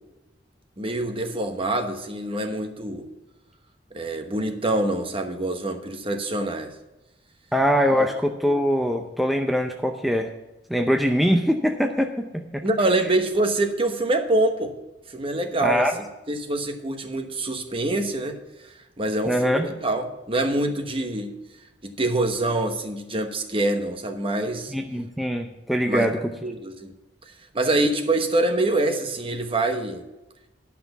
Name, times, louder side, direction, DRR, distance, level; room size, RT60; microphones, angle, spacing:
voice 1, 0.8-3.1 3.9-6.7 8.0-8.1 12.6-14.7 15.1-15.9 16.3-21.3 21.8-24.7 25.9-26.1 26.4-26.9 27.5-30.0, right 2 dB, 30° right, 6 dB, 1.1 m, -25 dB
voice 2, 7.5-10.3 10.7-12.6 15.6-15.9 19.3-19.7 24.7-26.2, equal, ahead, 3 dB, 0.6 m, -22 dB
11.0 x 5.9 x 6.8 m, 1.0 s
head